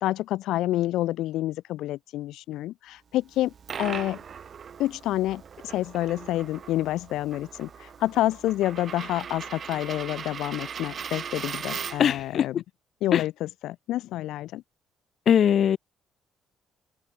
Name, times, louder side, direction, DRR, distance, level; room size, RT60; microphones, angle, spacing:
voice 1, 0.0-3.5 3.8-4.2 4.8-12.5 13.0-14.6, left 15 dB, 70° left, 1.0 m, -28 dB
Coin (dropping), 3.3-12.2, right 7 dB, 35° right, 6.1 m, -39 dB
voice 2, 12.0-12.5 13.1-13.2 15.3-15.8, left 9 dB, 40° left, 0.3 m, -20 dB
cardioid pair, 170°, 0 cm